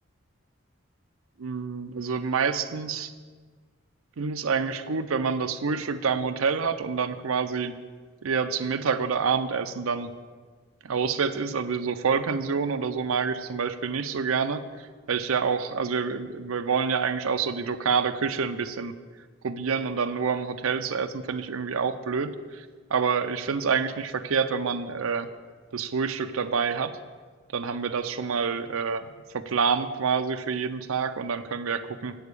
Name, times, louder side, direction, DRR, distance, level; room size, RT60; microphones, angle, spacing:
voice 1, 1.4-3.1 4.2-7.7 8.2-10.1 10.8-19.0 19.4-25.3 25.7-26.9 27.5-29.0 29.3-32.2, right 5 dB, 90° right, 9 dB, 0.6 m, -27 dB
7.8 x 6.9 x 8.2 m, 1.5 s
head